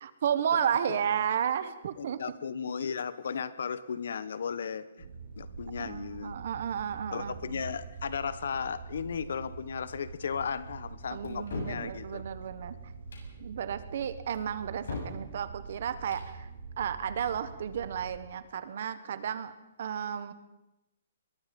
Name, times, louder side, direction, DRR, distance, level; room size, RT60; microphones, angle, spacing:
voice 1, 0.0-2.2 5.8-7.6 11.1-12.7 13.4-16.5 16.8-19.5 19.8-20.3, right 8 dB, 45° right, 13 dB, 1.4 m, -32 dB
voice 2, 2.0-4.9 5.4-6.4 7.1-12.2, left 6 dB, 65° left, 16 dB, 1.2 m, -35 dB
sound 1, 5.0-18.2, right 5 dB, 80° right, 5.5 m, -45 dB
sound 2, 11.2-11.8 13.0-13.3 14.3-15.2 15.9-16.3, left 4 dB, 80° left, 7.4 m, -39 dB
22.5 x 22.0 x 5.4 m, 0.95 s
hypercardioid pair, 180°, 0 cm